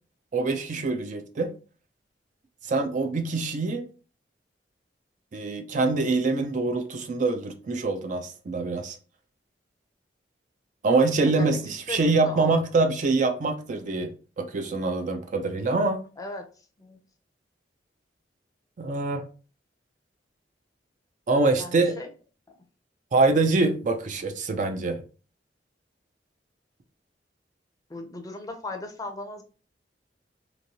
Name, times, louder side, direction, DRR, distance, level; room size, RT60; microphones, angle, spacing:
voice 1, 0.3-1.5 2.6-3.8 5.3-9.0 10.8-11.6 11.9-16.0 18.8-19.2 21.3-22.0 23.1-25.0, right 3 dB, 45° right, 0.4 m, -24 dB
voice 2, 11.1-11.6 11.9-12.6 16.2-16.4 16.8-17.0 21.6-22.1 22.5-22.6 27.9-29.4, left 2 dB, 20° left, 0.5 m, -37 dB
2.9 x 2.6 x 2.7 m
head